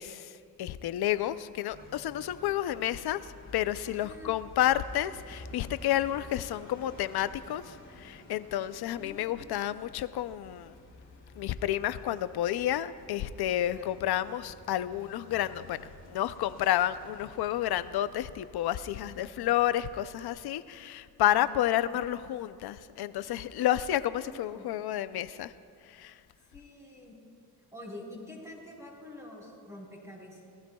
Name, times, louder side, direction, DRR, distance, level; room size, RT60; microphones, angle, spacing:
voice 1, 0.0-10.8 11.4-25.5 25.9-26.2, left 12 dB, 70° left, 14 dB, 0.6 m, -30 dB
sound 1, 1.7-19.9, left 2 dB, 30° left, 2.6 m, -52 dB
voice 2, 3.8-4.3 8.8-9.5 13.7-13.9 19.0-19.4 21.3-22.0 23.7-24.7 26.5-27.2 27.7-30.5, left 1 dB, 10° right, -5 dB, 4.3 m, -47 dB
25.0 x 18.5 x 2.3 m, 2.4 s
cardioid pair, 150°, 39 cm